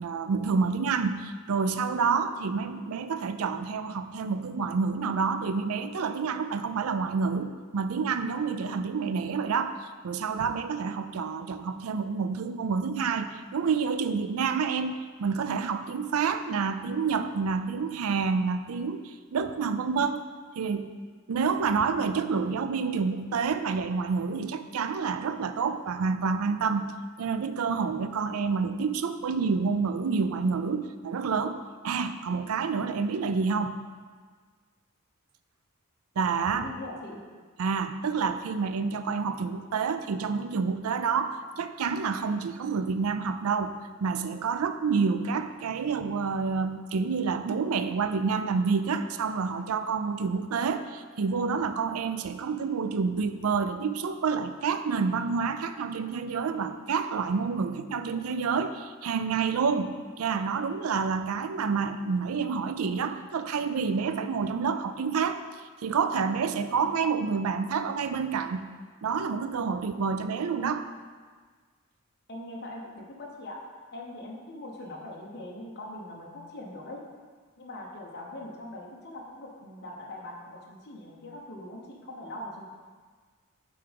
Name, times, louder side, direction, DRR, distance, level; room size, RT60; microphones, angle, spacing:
voice 1, 0.0-20.2 20.6-20.9 21.3-26.9 27.2-33.8 36.2-36.7 37.6-65.4 65.8-68.7 69.0-70.9, right 5 dB, 75° right, 10 dB, 0.4 m, -28 dB
voice 2, 36.4-37.2 72.3-73.6 73.9-77.0 77.6-82.7, left 1 dB, 50° left, -2 dB, 1.0 m, -41 dB
8.6 x 3.6 x 5.2 m, 1.5 s
head